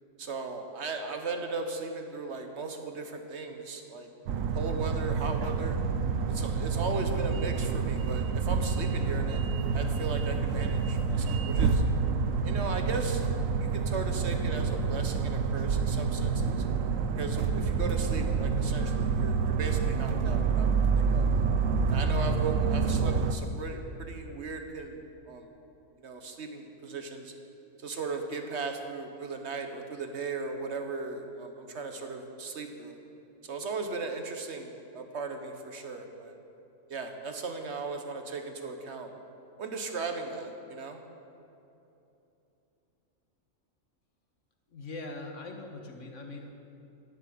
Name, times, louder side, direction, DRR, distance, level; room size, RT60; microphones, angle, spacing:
voice 1, 0.2-4.1 4.5-5.8 6.3-9.4 9.7-11.8 12.4-13.3 13.6-16.6 17.2-21.3 21.9-25.0 25.3-25.5 26.0-27.3 27.8-33.0 33.4-36.4 36.9-39.1 39.6-41.0, right 4 dB, 55° right, 5 dB, 1.6 m, -37 dB
sound 1, 4.3-23.3, right 5 dB, 70° right, 1.2 m, -28 dB
voice 2, 44.7-46.5, left 2 dB, 65° left, 3 dB, 1.9 m, -41 dB
12.5 x 11.0 x 8.6 m, 2.9 s
omnidirectional pair, 1.4 m